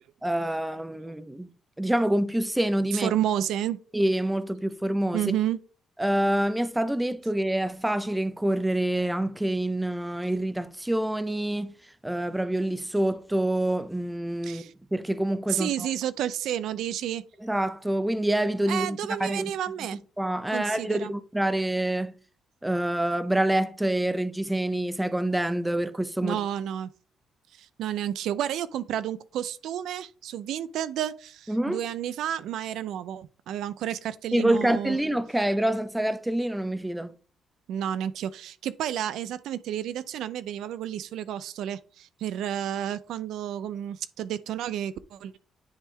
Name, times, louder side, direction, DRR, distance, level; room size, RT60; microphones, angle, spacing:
voice 1, 0.2-1.5 1.8-3.1 3.9-5.2 6.0-11.7 12.0-14.6 14.9-15.9 17.4-19.5 20.2-22.1 22.6-26.4 31.5-31.8 34.3-37.1, right 1 dB, 10° right, 0.6 m, -26 dB
voice 2, 2.9-3.8 5.1-5.6 14.4-14.7 15.5-17.2 18.7-20.0 20.5-21.1 26.2-26.9 27.5-35.0 37.7-45.4, right 10 dB, 80° right, 0.4 m, -31 dB
10.0 x 3.5 x 3.3 m
cardioid pair, 90°, 0 cm